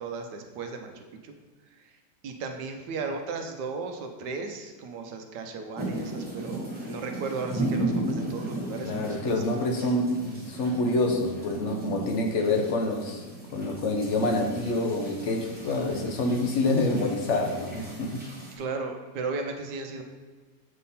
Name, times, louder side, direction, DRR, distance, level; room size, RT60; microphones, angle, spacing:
voice 1, 0.0-1.3 1.7-9.9 18.6-20.0, right 4 dB, 75° right, 5 dB, 1.2 m, -36 dB
sound 1, 5.8-18.6, right 2 dB, 5° right, 1.0 m, -36 dB
voice 2, 8.8-13.2 13.5-18.2, left 2 dB, 55° left, 2 dB, 0.8 m, -27 dB
7.5 x 3.6 x 4.1 m, 1.4 s
omnidirectional pair, 1.9 m